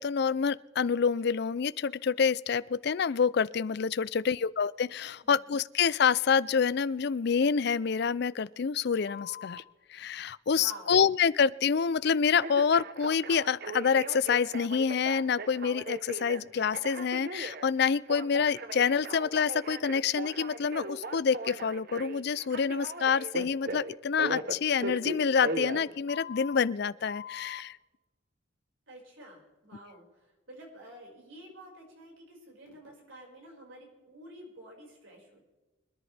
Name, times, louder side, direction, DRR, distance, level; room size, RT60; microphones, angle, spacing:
voice 1, 0.0-9.6 9.9-27.8, left 6 dB, 55° left, 18 dB, 0.4 m, -27 dB
voice 2, 4.0-4.4 5.2-5.4 10.5-10.9 28.9-35.4, right 1 dB, 70° right, -1 dB, 5.4 m, -50 dB
Telephone, 9.1-9.6 12.4-26.6 27.1-27.6, right 2 dB, 50° right, 0.9 m, -39 dB
25.5 x 10.5 x 3.4 m, 1.2 s
head